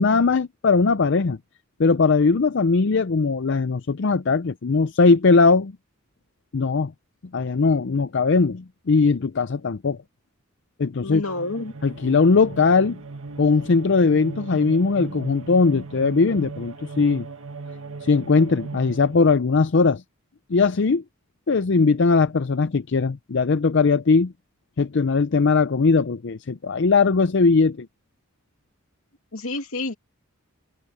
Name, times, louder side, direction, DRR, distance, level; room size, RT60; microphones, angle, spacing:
voice 1, 0.0-1.4 1.8-5.7 6.5-6.9 7.3-10.0 10.8-11.2 11.8-13.0 13.4-17.3 18.0-20.0 20.5-21.0 21.5-24.3 24.8-27.9, left 4 dB, 55° left, 0.5 m, -19 dB
voice 2, 11.0-11.7 29.3-29.9, left 2 dB, 75° left, 2.6 m, -29 dB
sound 1, 11.2-19.4, right 3 dB, 70° right, 1.6 m, -38 dB
head